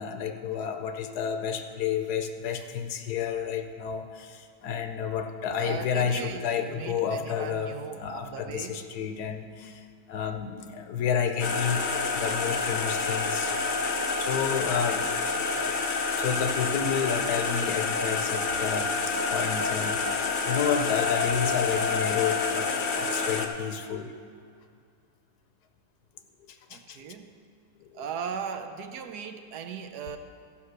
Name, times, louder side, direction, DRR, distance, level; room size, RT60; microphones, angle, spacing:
voice 1, 0.0-13.5 14.2-15.1 15.5-22.7 23.0-24.1 26.5-27.0 27.8-28.1, left 7 dB, 70° left, 6 dB, 1.2 m, -31 dB
voice 2, 5.6-8.9 26.7-27.3 27.9-30.2, right 7 dB, 75° right, 7 dB, 1.2 m, -38 dB
sound 1, 11.4-23.5, left 4 dB, 55° left, 0.5 m, -28 dB
13.0 x 5.2 x 6.6 m, 2.3 s
omnidirectional pair, 1.8 m